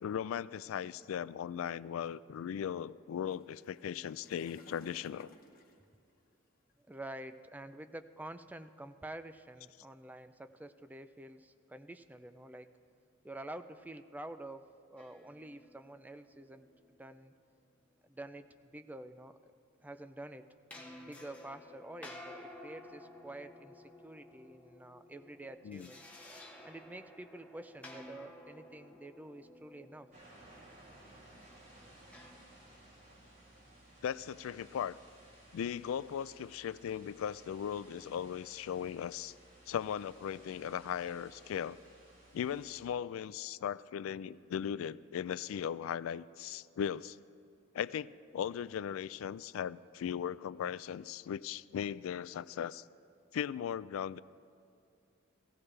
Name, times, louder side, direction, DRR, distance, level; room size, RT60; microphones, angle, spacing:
voice 1, 0.0-5.3 25.6-25.9 34.0-35.0 35.5-39.3 39.7-41.8 42.3-47.2 47.7-52.8 53.3-54.2, left 8 dB, 70° left, 19 dB, 0.3 m, -38 dB
sound 1, 3.2-6.8 7.5-7.7 8.4-8.5 8.8-9.0 9.6-10.1 11.0-12.1 12.5-13.0 13.5-13.8 14.2-16.9, left 1 dB, 45° left, 1.0 m, -60 dB
voice 2, 6.9-12.8 13.2-17.3 18.0-19.5 19.8-20.5 21.0-26.0 26.6-30.1, right 1 dB, 10° right, 9 dB, 0.4 m, -48 dB
sound 2, 15.0-17.1 20.7-32.3, left 1 dB, 5° left, 1.1 m, -54 dB
sound 3, 30.1-42.8, right 1 dB, 45° right, 4.2 m, -59 dB
16.5 x 15.5 x 3.3 m, 2.4 s
head